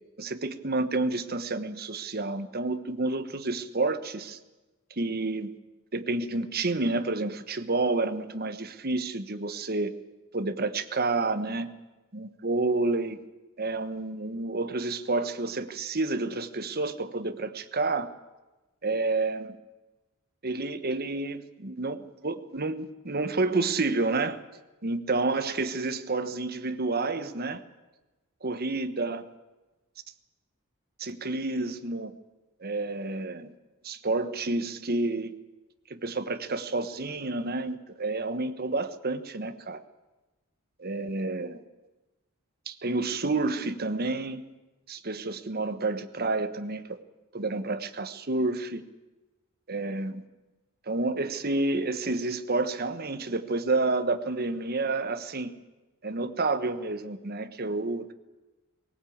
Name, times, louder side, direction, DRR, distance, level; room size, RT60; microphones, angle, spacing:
voice 1, 0.2-4.4 5.0-5.5 5.9-9.9 10.3-11.7 12.1-13.2 13.6-18.1 18.8-19.6 20.4-24.4 24.8-27.6 28.4-29.3 31.0-32.1 32.6-33.5 33.8-35.3 35.9-39.8 40.8-41.6 42.7-44.4 44.9-47.0 47.3-48.8 49.7-50.2 50.9-55.5 56.0-58.1, right 3 dB, 45° right, 10 dB, 1.3 m, -29 dB
20.0 x 18.0 x 8.7 m, 1.1 s
head